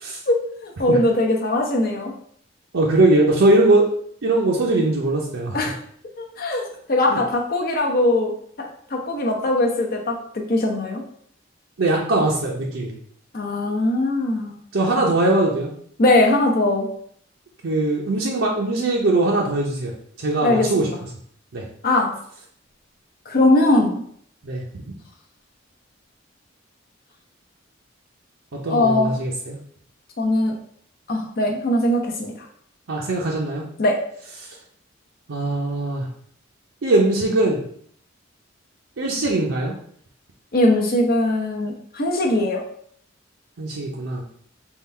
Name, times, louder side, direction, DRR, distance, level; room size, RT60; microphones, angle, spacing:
voice 1, 0.3-2.1 5.5-5.8 6.2-8.3 8.6-11.0 13.3-14.6 16.0-16.9 20.4-20.9 21.8-22.1 23.3-24.0 28.7-29.1 30.2-30.5 31.1-32.5 33.8-34.0 40.5-42.6, left 1 dB, 50° left, 1 dB, 0.8 m, -20 dB
voice 2, 2.7-3.8 4.2-5.6 7.1-7.2 11.8-13.0 14.7-15.7 17.6-19.9 20.2-20.9 21.5-21.6 24.4-24.6 28.6-29.6 32.9-33.6 35.3-36.1 36.8-37.6 39.0-39.7 43.6-44.2, right 2 dB, 75° right, -3 dB, 0.6 m, -20 dB
3.7 x 2.3 x 4.3 m, 0.63 s
head